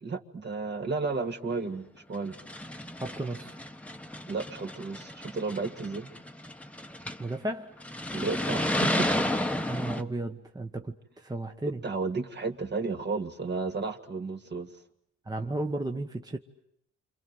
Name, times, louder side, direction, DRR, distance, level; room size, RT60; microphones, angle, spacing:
voice 1, 0.0-2.4 4.3-6.1 8.1-9.3 11.8-14.7, right 4 dB, 35° right, 4 dB, 2.3 m, -33 dB
sound 1, 1.5-1.6 2.2-7.3 7.8-10.0, left 1 dB, 5° left, 1.4 m, -32 dB
voice 2, 3.0-3.5 7.2-7.8 9.7-11.8 15.2-16.4, right 2 dB, 15° right, 3 dB, 1.5 m, -34 dB
28.5 x 26.5 x 7.9 m, 0.75 s
cardioid pair, 90°, 30 cm